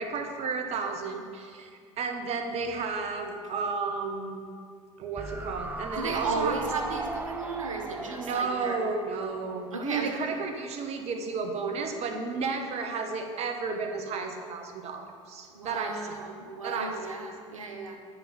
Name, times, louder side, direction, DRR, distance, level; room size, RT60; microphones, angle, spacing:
voice 1, 0.0-4.4 5.0-6.6 8.1-16.2 16.6-16.9, right 4 dB, 40° right, 5 dB, 1.0 m, -32 dB
sound 1, 5.2-10.4 10.7-10.8, right 3 dB, 10° right, 0.4 m, -39 dB
voice 2, 5.9-8.8 9.7-10.2 15.5-18.0, right 3 dB, 80° right, 3 dB, 0.8 m, -34 dB
9.4 x 5.4 x 4.3 m, 2.1 s
figure-of-eight pair, 70°, 17 cm